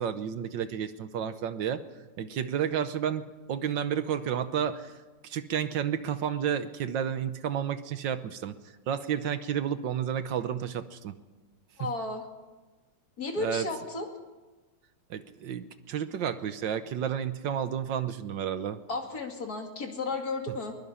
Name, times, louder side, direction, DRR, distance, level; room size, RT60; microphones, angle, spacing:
voice 1, 0.0-1.8 2.2-4.9 5.2-8.5 8.9-11.1 11.8-11.9 13.4-13.7 15.1-18.8, right 8 dB, 70° right, 11 dB, 1.6 m, -31 dB
voice 2, 11.8-12.2 13.2-14.1 18.9-20.8, left 3 dB, 50° left, 3 dB, 2.8 m, -33 dB
22.0 x 21.5 x 5.7 m, 1.2 s
omnidirectional pair, 2.1 m